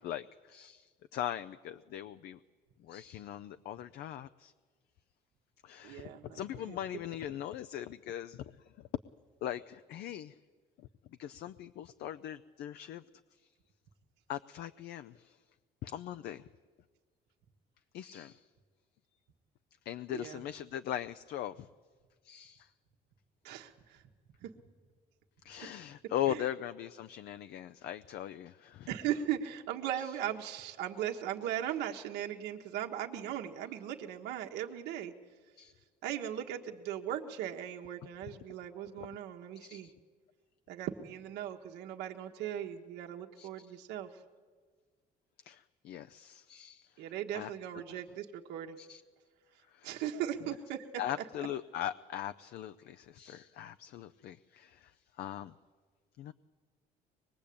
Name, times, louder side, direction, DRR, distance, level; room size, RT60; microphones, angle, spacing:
voice 1, 0.0-2.4 2.8-4.5 5.6-8.5 8.8-8.9 9.4-10.4 11.2-13.0 14.3-15.4 15.8-16.4 17.9-18.5 19.9-21.7 22.2-22.7 25.4-28.9 30.0-30.1 35.6-35.7 38.2-38.4 39.0-39.1 39.6-39.9 43.4-43.7 45.4-47.5 47.9-48.0 48.8-49.0 49.7-49.9 50.4-50.6 51.0-55.5 56.2-56.3, left 11 dB, 70° left, 11 dB, 0.6 m, -40 dB
voice 2, 5.8-6.8 20.1-20.4 23.4-24.0 24.4-24.5 26.3-26.4 28.9-35.1 36.0-39.9 40.7-44.1 47.0-48.8 49.8-50.9, right 10 dB, 85° right, 2 dB, 1.5 m, -38 dB
24.0 x 21.5 x 8.6 m, 1.5 s
cardioid pair, 110°, 17 cm